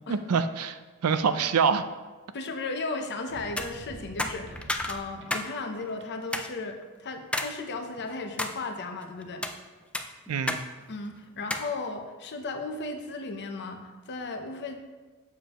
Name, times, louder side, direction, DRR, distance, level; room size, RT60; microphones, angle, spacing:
voice 1, 0.1-1.8 10.3-10.6, right 6 dB, 75° right, 11 dB, 0.4 m, -25 dB
voice 2, 2.3-9.5 10.9-14.8, left 3 dB, 50° left, 5 dB, 0.7 m, -35 dB
sound 1, 3.3-5.5 5.8-6.3, right 1 dB, 55° right, 0.8 m, -45 dB
sound 2, 3.4-3.7 4.2-5.5 5.8-5.9 6.3-6.5 7.3-7.5 8.0-8.6 9.2-9.6 9.9-10.6 10.9-11.0 11.5-11.7, left 1 dB, 5° left, 0.3 m, -31 dB
7.1 x 6.8 x 3.0 m, 1.3 s
head